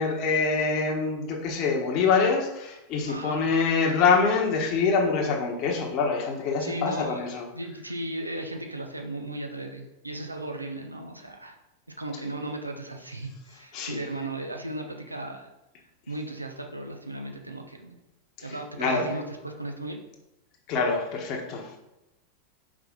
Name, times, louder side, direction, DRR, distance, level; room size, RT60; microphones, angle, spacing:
voice 1, 0.0-7.5 13.7-14.0 18.4-19.1 20.7-21.8, left 4 dB, 40° left, 0 dB, 1.3 m, -25 dB
voice 2, 3.0-3.5 6.6-7.3 7.5-11.6 12.0-15.5 16.1-18.0 18.4-20.0, right 1 dB, 85° right, 4 dB, 0.8 m, -36 dB
5.3 x 5.0 x 3.9 m, 0.94 s
figure-of-eight pair, 90°, 0 cm